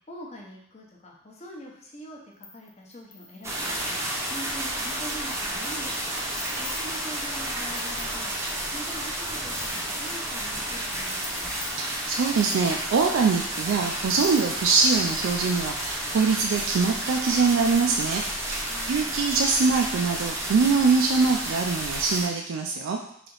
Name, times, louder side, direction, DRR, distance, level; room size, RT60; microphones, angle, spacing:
voice 1, 0.1-2.2 2.5-6.1 6.6-8.3 8.6-11.6 18.7-19.1, equal, 35° left, -1 dB, 0.7 m, -43 dB
sound 1, 2.4-3.8 4.8-5.0 5.3-8.9 9.1-10.6 10.9-13.2 14.2-15.5, left 4 dB, 65° left, 0.8 m, -45 dB
sound 2, 3.4-22.3, right 1 dB, 15° right, 0.6 m, -31 dB
voice 2, 11.7-23.0, right 4 dB, 75° right, 3 dB, 0.3 m, -23 dB
3.3 x 2.8 x 3.9 m, 0.72 s
head